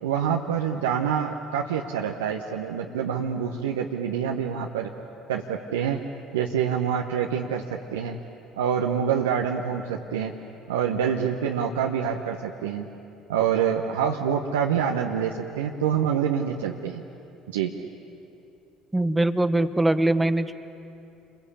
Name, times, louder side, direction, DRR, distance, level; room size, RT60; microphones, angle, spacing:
voice 1, 0.0-4.9 5.3-6.0 6.3-7.6 7.9-8.2 8.6-10.3 10.7-12.9 13.3-17.0 17.5-17.7, right 8 dB, 80° right, 1 dB, 1.1 m, -26 dB
voice 2, 18.9-20.5, right 1 dB, 10° right, 11 dB, 1.3 m, -22 dB
28.5 x 22.5 x 8.6 m, 2.7 s
hypercardioid pair, 60°, 0 cm